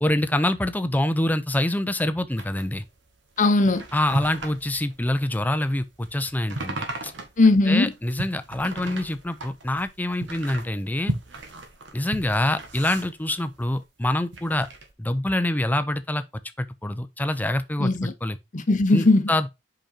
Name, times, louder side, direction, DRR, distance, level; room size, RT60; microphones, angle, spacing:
voice 1, 0.0-2.8 3.9-7.1 7.7-11.1 11.9-14.7 15.0-16.2 16.6-18.4 18.9-19.5, left 1 dB, 10° left, 0.5 m, -25 dB
sound 1, 2.3-13.8 14.2-14.9, right 2 dB, 85° right, 1.6 m, -37 dB
voice 2, 3.4-3.8 7.4-7.9 17.8-18.1 18.5-19.3, left 2 dB, 45° left, 0.8 m, -19 dB
5.3 x 5.2 x 4.3 m
head